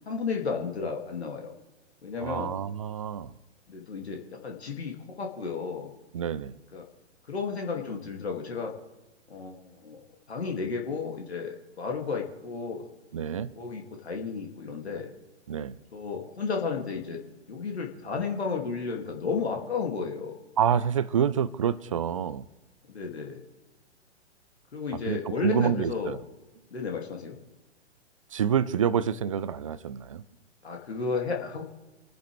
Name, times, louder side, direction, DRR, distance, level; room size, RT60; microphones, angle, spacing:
voice 1, 0.1-1.5 2.0-2.5 3.7-5.9 6.7-6.8 7.3-8.7 9.3-10.0 10.3-12.9 13.5-15.1 15.9-17.2 17.5-20.4 22.9-23.4 24.7-26.2 26.7-27.4 30.6-31.6, left 5 dB, 60° left, 2.6 m, -33 dB
voice 2, 2.2-3.3 6.1-6.6 13.1-13.5 15.5-15.8 20.6-22.5 25.1-26.2 28.3-30.2, right 8 dB, 30° right, 0.5 m, -27 dB
28.0 x 10.5 x 3.4 m
figure-of-eight pair, 125°, 36 cm